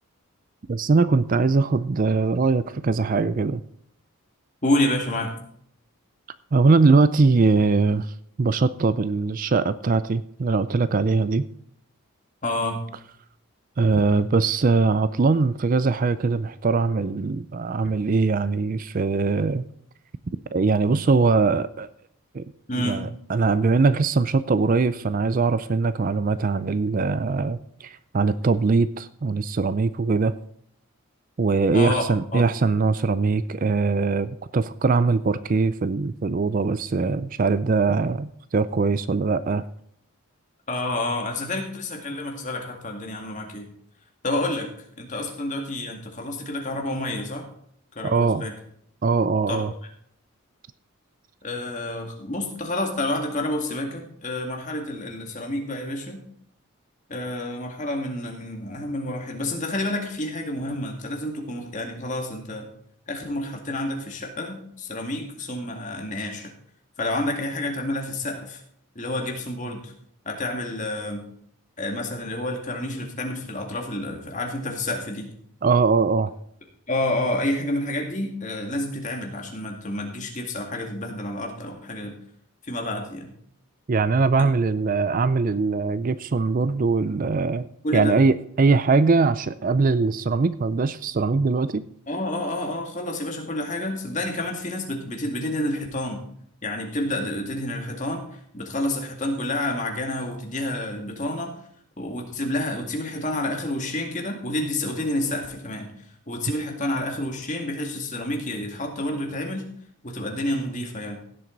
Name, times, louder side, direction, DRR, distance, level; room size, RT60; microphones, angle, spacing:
voice 1, 0.7-3.6 6.5-8.1 8.4-11.4 13.8-19.6 20.5-21.9 22.3-22.4 22.8-30.3 31.4-39.6 48.0-48.5 49.0-49.7 75.6-76.3 83.9-87.7 87.9-91.8, right 4 dB, 40° right, 15 dB, 0.4 m, -21 dB
voice 2, 4.6-5.3 12.4-12.8 22.7-23.1 31.7-32.5 40.7-43.7 44.2-47.5 48.0-48.5 49.5-49.6 51.4-56.2 57.1-62.6 63.1-66.5 67.0-68.6 69.0-69.9 70.2-71.2 71.8-75.3 76.9-82.1 82.6-83.3 84.4-84.5 87.8-88.2 92.1-96.2 96.6-101.5 102.0-105.9 106.3-109.7 110.0-111.2, left 1 dB, 35° left, 2 dB, 2.2 m, -29 dB
16.5 x 7.7 x 3.9 m, 0.67 s
head